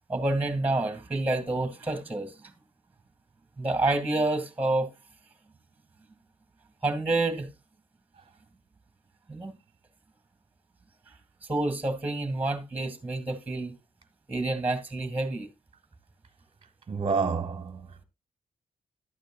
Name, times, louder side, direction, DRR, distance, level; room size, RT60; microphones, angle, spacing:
voice 1, 0.1-2.3 3.6-4.9 6.8-7.5 9.3-9.5 11.5-13.7 14.3-15.5, right 2 dB, 10° right, 2.2 m, -28 dB
voice 2, 16.9-17.9, right 5 dB, 35° right, 1.1 m, -28 dB
12.0 x 9.0 x 2.4 m
cardioid pair, 90°, 15 cm